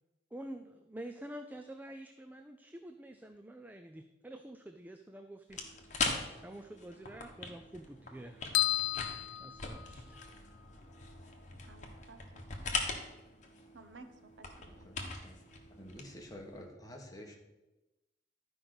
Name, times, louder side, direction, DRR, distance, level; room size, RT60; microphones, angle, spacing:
voice 1, 0.3-5.8 6.4-8.4 9.4-10.4, right 1 dB, 10° right, 0.4 m, -48 dB
sound 1, 5.5-16.7, left 3 dB, 40° left, 1.4 m, -41 dB
sound 2, 8.5-10.3, left 14 dB, 80° left, 0.4 m, -33 dB
voice 2, 11.6-12.4 13.7-14.9, right 3 dB, 80° right, 0.9 m, -55 dB
voice 3, 15.8-17.4, equal, 20° left, 1.4 m, -49 dB
12.0 x 5.1 x 6.1 m
head